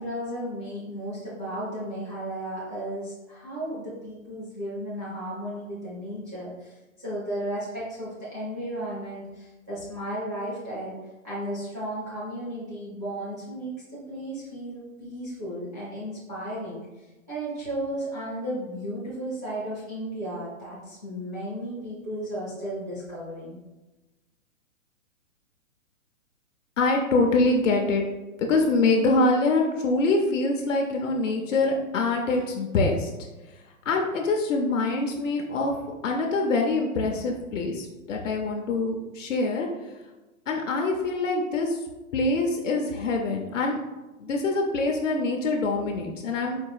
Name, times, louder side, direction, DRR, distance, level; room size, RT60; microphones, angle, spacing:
voice 1, 0.0-11.0 11.2-23.6, right 1 dB, 15° right, -9 dB, 0.4 m, -34 dB
voice 2, 26.8-28.0 28.4-33.1 33.9-35.7 36.0-39.7 40.5-41.8 42.1-43.8 44.2-46.6, left 3 dB, 60° left, 1 dB, 0.8 m, -24 dB
4.5 x 2.4 x 4.7 m, 1.1 s
hypercardioid pair, 165°, 42 cm